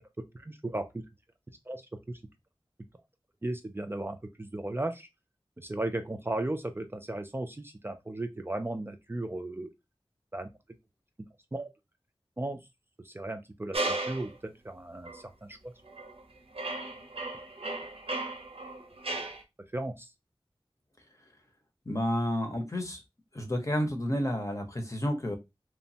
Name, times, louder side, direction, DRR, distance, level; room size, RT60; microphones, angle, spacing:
voice 1, 0.3-0.8 1.7-2.2 3.4-5.1 5.6-9.7 10.3-10.5 11.5-11.7 12.4-12.6 13.0-15.7 19.7-20.1, right 1 dB, 25° right, 0.4 m, -36 dB
sound 1, 13.7-14.3 15.1-15.2 15.9-16.2 16.5-19.4, right 2 dB, 85° right, 0.6 m, -35 dB
voice 2, 21.9-23.0 23.3-25.4, equal, 35° left, 0.7 m, -30 dB
3.0 x 2.1 x 2.7 m
wide cardioid pair, 45°, 10 cm